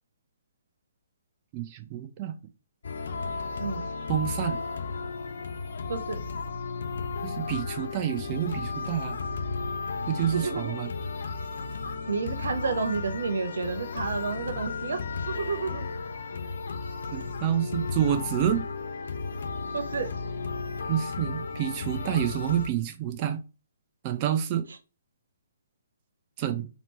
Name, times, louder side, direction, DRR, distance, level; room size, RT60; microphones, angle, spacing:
voice 1, 1.5-2.4 4.1-4.6 7.2-9.2 10.1-10.9 17.1-18.6 20.9-23.4 24.0-24.6 26.4-26.7, right 10 dB, 30° right, 0.6 m, -28 dB
sound 1, 2.8-22.7, left 4 dB, 60° left, 0.7 m, -34 dB
voice 2, 10.3-10.8 12.1-15.9 19.7-20.1, right 4 dB, 65° right, 0.8 m, -30 dB
4.2 x 3.0 x 3.0 m
figure-of-eight pair, 130°, 0 cm